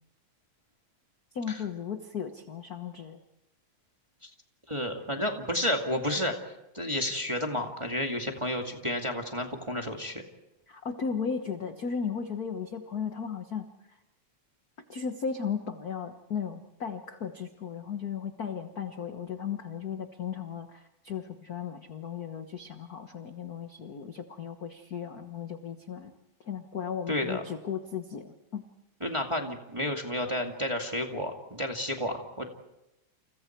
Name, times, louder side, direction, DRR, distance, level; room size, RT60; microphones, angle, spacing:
voice 1, 1.3-3.2 10.7-14.0 14.9-26.1 26.4-28.6, left 7 dB, 50° left, 6 dB, 1.2 m, -36 dB
voice 2, 4.7-6.3 6.7-10.2 27.1-27.4 29.0-32.4, left 1 dB, 10° right, 2 dB, 1.8 m, -31 dB
29.5 x 29.5 x 4.6 m, 0.93 s
omnidirectional pair, 3.3 m